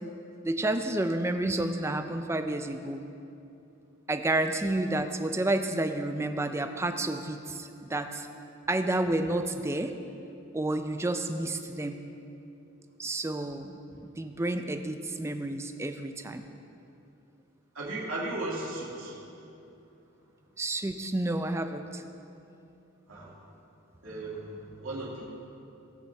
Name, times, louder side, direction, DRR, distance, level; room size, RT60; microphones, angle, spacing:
voice 1, 0.4-3.0 4.1-8.3 8.7-9.9 10.5-12.0 13.0-13.8 14.2-16.5 20.6-22.0, right 2 dB, 15° right, 7 dB, 0.4 m, -30 dB
voice 2, 17.7-19.2 23.1-23.3 24.0-25.3, right 2 dB, 75° right, -4 dB, 2.4 m, -36 dB
18.5 x 7.0 x 3.4 m, 2.8 s
head